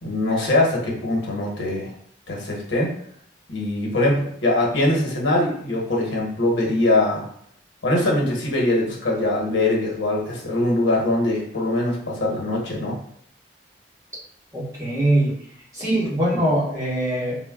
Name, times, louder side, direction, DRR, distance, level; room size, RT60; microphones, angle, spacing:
voice 1, 0.0-1.9 2.3-2.9 3.5-7.3 7.8-13.0, left 1 dB, 90° left, -3 dB, 1.0 m, -22 dB
voice 2, 14.5-15.3 15.7-17.4, right 1 dB, 15° right, -7 dB, 1.1 m, -22 dB
4.0 x 2.2 x 2.3 m, 0.66 s
head